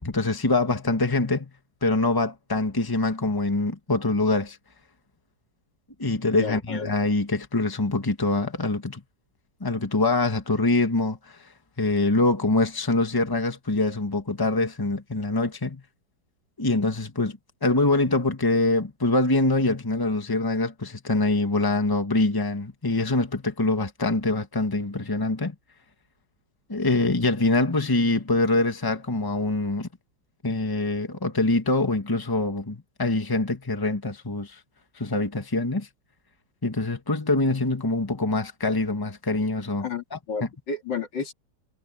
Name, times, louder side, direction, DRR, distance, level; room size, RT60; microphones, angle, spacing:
voice 1, 0.0-1.5 1.8-4.6 6.0-9.0 9.6-11.4 11.8-15.8 16.6-25.5 26.7-29.9 30.4-34.6 35.0-35.9 36.6-39.8 40.1-40.2, left 2 dB, 10° left, 1.7 m, -24 dB
voice 2, 6.4-7.0 39.8-41.3, left 5 dB, 80° left, 3.1 m, -32 dB
omnidirectional pair, 1.9 m